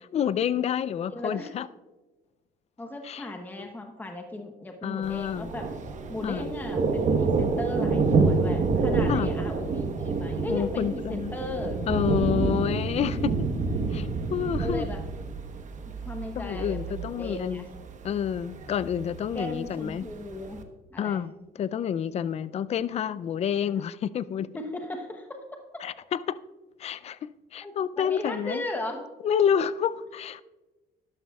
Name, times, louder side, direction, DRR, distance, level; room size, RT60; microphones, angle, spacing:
voice 1, 0.1-1.7 3.0-3.3 3.6-3.7 4.8-5.5 6.2-6.5 9.1-9.3 10.5-11.3 11.9-13.3 13.9-14.9 16.4-17.6 18.0-20.1 21.0-21.3 21.6-24.5 25.8-26.4 26.8-28.6 29.2-30.4, left 8 dB, 40° left, 0.4 m, -29 dB
voice 2, 1.1-1.5 2.8-5.7 6.1-11.8 12.5-13.3 14.6-15.0 15.8-17.7 19.3-20.6 20.9-21.2 23.6-23.8 24.5-25.4 27.6-29.0, left 1 dB, 10° left, 1.0 m, -37 dB
Thunder, 5.0-20.6, right 4 dB, 45° right, 1.0 m, -28 dB
12.5 x 11.5 x 2.3 m
cardioid pair, 110°, 17 cm